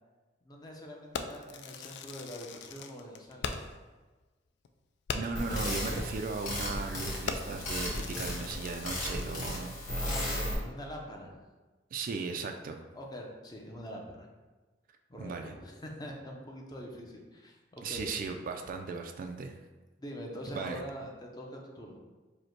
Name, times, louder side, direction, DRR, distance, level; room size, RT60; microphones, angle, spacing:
voice 1, 0.4-3.6 10.0-11.4 12.9-14.3 15.1-18.2 20.0-22.0, equal, 20° left, 0 dB, 0.6 m, -44 dB
Fireworks, 1.1-3.9 4.2-4.3 4.6-4.7 5.1-5.5 6.1-6.3 6.7-6.9 7.3-9.3, left 5 dB, 65° left, 0.3 m, -40 dB
voice 2, 5.1-9.7 11.9-12.8 15.2-15.5 17.8-19.6 20.5-20.8, right 4 dB, 50° right, 5 dB, 0.3 m, -37 dB
sound 1, 5.3-10.5, left 1 dB, 45° left, 1.4 m, -35 dB
5.0 x 2.1 x 4.4 m, 1.2 s
head